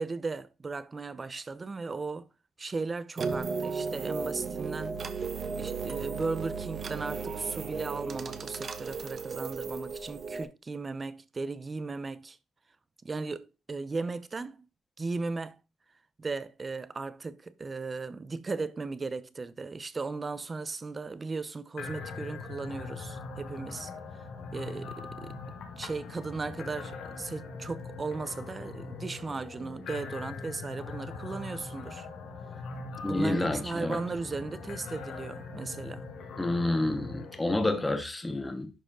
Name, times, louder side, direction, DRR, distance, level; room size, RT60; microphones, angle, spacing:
voice 1, 0.0-2.3 2.6-5.0 5.6-12.4 13.0-14.7 15.0-15.6 16.2-23.9 24.5-25.4 25.8-32.1 33.0-36.1, right 3 dB, 30° right, 0.9 m, -36 dB
sound 1, 3.2-10.4, right 5 dB, 45° right, 1.3 m, -35 dB
sound 2, 21.8-38.0, left 4 dB, 70° left, 2.3 m, -42 dB
voice 2, 33.0-34.0 36.4-38.7, left 2 dB, 15° left, 1.9 m, -29 dB
11.5 x 4.9 x 3.8 m
cardioid pair, 90°, 0 cm